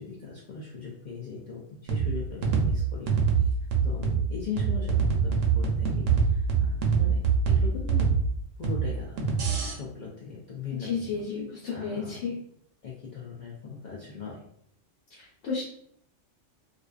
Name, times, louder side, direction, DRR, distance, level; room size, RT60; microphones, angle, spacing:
voice 1, 0.0-3.6 3.8-7.2 7.5-8.2 8.6-9.4 9.7-11.2 11.7-12.3 12.8-14.4, left 5 dB, 60° left, -5 dB, 0.5 m, -39 dB
sound 1, 1.9-9.7, right 6 dB, 75° right, 0.9 m, -25 dB
voice 2, 10.8-12.3 15.2-15.6, left 5 dB, 80° left, -8 dB, 1.1 m, -32 dB
2.4 x 2.3 x 2.3 m, 0.68 s
omnidirectional pair, 1.3 m